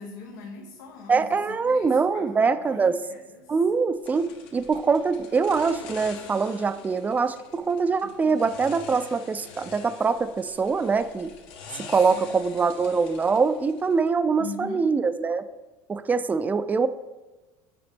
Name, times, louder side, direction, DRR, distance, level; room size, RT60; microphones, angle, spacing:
voice 1, 0.0-3.5 8.0-8.5 12.1-12.7 14.4-14.9, left 4 dB, 85° left, 0 dB, 0.9 m, -42 dB
voice 2, 1.1-3.0 3.5-11.3 11.9-15.4 15.9-16.9, right 5 dB, 15° right, 12 dB, 0.3 m, -23 dB
sound 1, 4.0-14.1, left 5 dB, 65° left, 1.2 m, -45 dB
7.8 x 5.0 x 3.4 m, 1.1 s
supercardioid pair, 110°, 10 cm